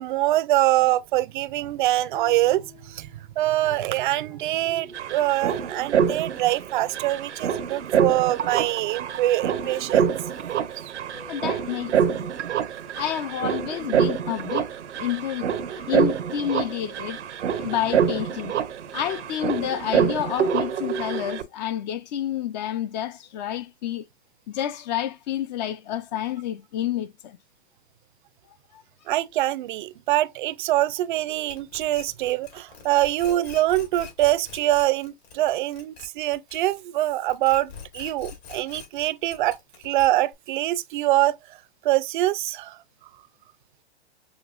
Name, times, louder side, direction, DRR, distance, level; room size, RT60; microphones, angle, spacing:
voice 1, 0.0-10.1 10.8-10.9 29.1-39.6 39.8-41.4 41.8-42.8, right 15 dB, 50° right, 0.5 m, -24 dB
sound 1, 1.9-5.4 9.6-12.1, left 5 dB, 85° left, 2.8 m, -50 dB
sound 2, 4.4-4.5 4.7-21.4, right 8 dB, 85° right, 0.8 m, -26 dB
voice 2, 11.3-12.3 13.0-14.7 14.9-17.2 17.5-18.6 18.9-24.1 24.5-27.4 28.7-28.8, left 10 dB, 40° left, 0.5 m, -29 dB
sound 3, 31.5-37.0 37.3-40.3, left 7 dB, 65° left, 2.7 m, -43 dB
6.5 x 2.9 x 2.4 m
hypercardioid pair, 130°, 34 cm